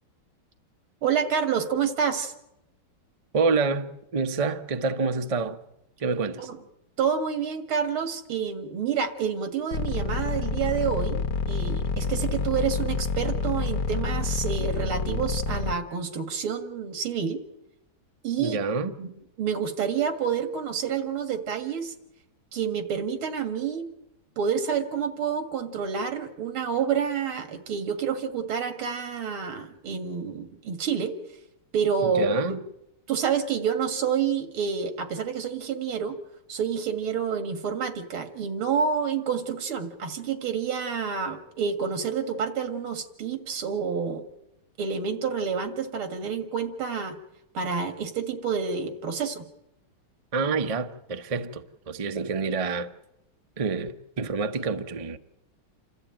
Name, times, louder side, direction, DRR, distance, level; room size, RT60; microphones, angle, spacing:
voice 1, 1.0-2.3 6.4-6.6 7.0-17.4 18.2-19.1 19.4-21.9 22.5-23.9 24.4-31.2 31.7-32.4 33.1-36.2 36.5-44.3 44.8-47.2 47.5-49.5, right 6 dB, 90° right, 2.6 m, -28 dB
voice 2, 3.3-5.6 6.0-6.5 18.4-18.9 32.0-32.6 50.3-52.9 53.6-55.2, right 4 dB, 55° right, 0.4 m, -27 dB
sound 1, 9.7-15.7, left 4 dB, 60° left, 1.6 m, -27 dB
28.0 x 13.5 x 8.8 m
omnidirectional pair, 2.2 m